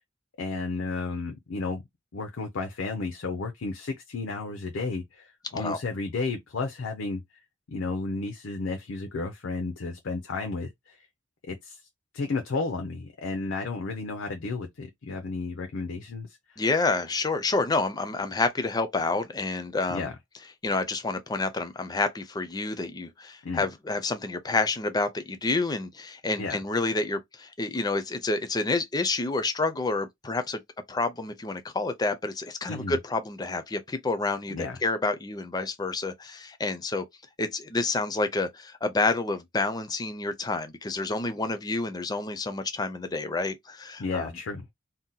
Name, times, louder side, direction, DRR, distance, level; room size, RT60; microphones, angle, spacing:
voice 1, 0.4-1.8 2.1-7.2 7.7-11.0 11.5-11.8 12.1-16.3 19.9-20.1 23.4-23.7 26.4-26.6 32.7-33.0 34.5-34.8 44.0-44.7, left 3 dB, 85° left, 0.5 m, -32 dB
voice 2, 16.6-20.1 20.6-30.6 30.9-37.0 37.4-44.3, left 3 dB, 20° left, 0.4 m, -29 dB
2.7 x 2.1 x 3.8 m
head